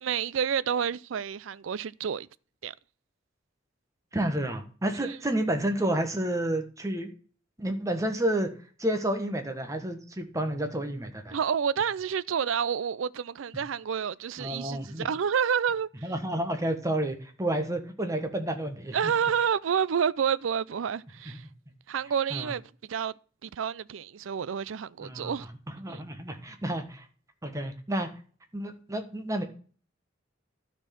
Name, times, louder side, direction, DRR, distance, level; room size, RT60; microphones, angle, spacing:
voice 1, 0.0-2.3 2.6-2.7 5.0-5.2 11.3-15.9 18.9-21.4 21.9-23.1 23.4-25.5 25.9-26.0, right 7 dB, 85° right, 0.4 m, -29 dB
voice 2, 4.1-7.1 7.6-8.5 8.8-11.4 14.4-15.1 16.0-19.1 22.3-22.5 25.0-25.5 25.8-27.0 27.4-28.1 28.5-29.4, right 1 dB, 15° right, 1.3 m, -30 dB
12.5 x 4.6 x 5.8 m
head